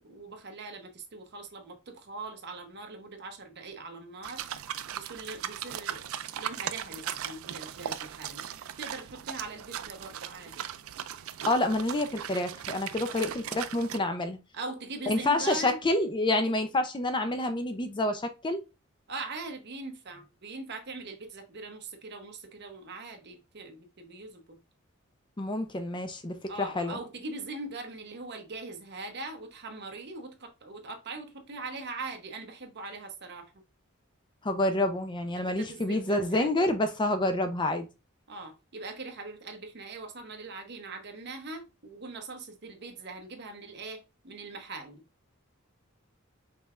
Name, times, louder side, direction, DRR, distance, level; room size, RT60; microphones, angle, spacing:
voice 1, 0.0-4.5 4.9-8.5 8.8-10.6 13.1-13.3 14.5-15.8 19.1-24.6 26.5-33.5 35.4-36.5 38.3-45.0, right 3 dB, 55° right, 0.9 m, -41 dB
sound 1, 4.2-14.0, right 10 dB, 75° right, 0.4 m, -38 dB
voice 2, 11.4-14.4 15.1-18.6 25.4-27.0 34.4-37.9, left 1 dB, 20° left, 0.5 m, -28 dB
5.4 x 3.3 x 2.4 m
head